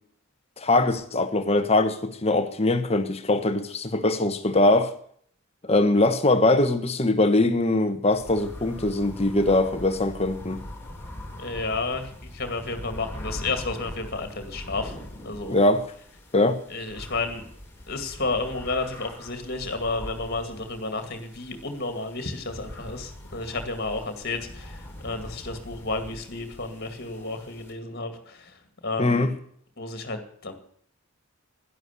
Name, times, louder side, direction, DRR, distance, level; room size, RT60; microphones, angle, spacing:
voice 1, 0.6-4.9 5.6-10.6 15.5-15.8 16.3-16.6 29.0-29.3, left 2 dB, 30° left, 1.2 m, -22 dB
sound 1, 8.1-27.7, left 1 dB, 10° left, 2.9 m, -42 dB
voice 2, 11.3-14.9 15.2-15.6 16.7-17.4 17.9-29.3 29.8-30.5, left 3 dB, 45° left, 2.3 m, -32 dB
12.0 x 11.5 x 8.3 m
head